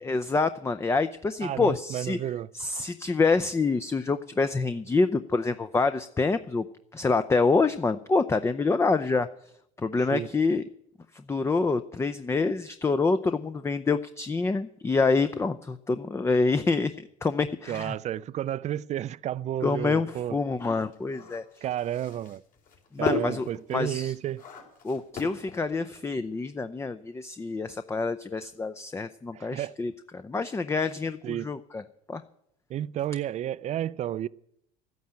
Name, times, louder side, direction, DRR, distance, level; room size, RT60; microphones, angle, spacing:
voice 1, 0.0-2.2 2.5-6.6 6.9-9.3 9.8-10.6 11.3-16.9 17.2-17.9 19.6-21.4 22.9-24.1 24.8-31.8 32.1-32.2, left 3 dB, 15° left, 0.5 m, -26 dB
voice 2, 1.4-2.5 10.1-10.3 17.7-20.4 21.6-22.4 23.0-24.4 29.3-29.7 31.2-31.5 32.7-34.3, right 11 dB, 40° right, 0.4 m, -31 dB
sound 1, 20.1-26.2, left 4 dB, 50° left, 4.1 m, -36 dB
12.5 x 9.4 x 8.8 m
supercardioid pair, 100°, 18 cm